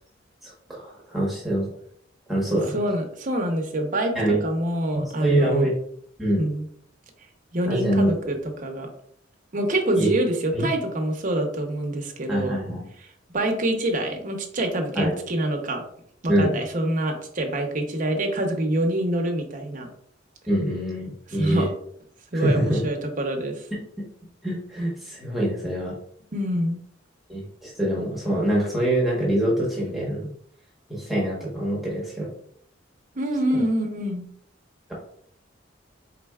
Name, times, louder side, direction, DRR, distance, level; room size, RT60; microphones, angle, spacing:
voice 1, 0.4-1.7 2.3-2.8 4.1-4.4 5.2-5.7 6.2-6.4 7.7-8.1 9.9-10.1 10.5-10.7 12.3-12.8 14.9-15.1 16.3-16.5 20.5-21.7 22.3-22.8 24.4-25.9 27.3-30.3 30.9-32.3 33.5-33.6, right 1 dB, ahead, -5 dB, 1.1 m, -24 dB
voice 2, 2.7-5.7 6.4-6.6 7.5-8.9 9.5-12.6 13.3-15.8 16.2-19.9 21.3-21.7 22.3-23.7 26.3-26.8 33.2-34.3, right 1 dB, 40° right, 3 dB, 0.7 m, -26 dB
4.2 x 3.9 x 2.3 m, 0.66 s
head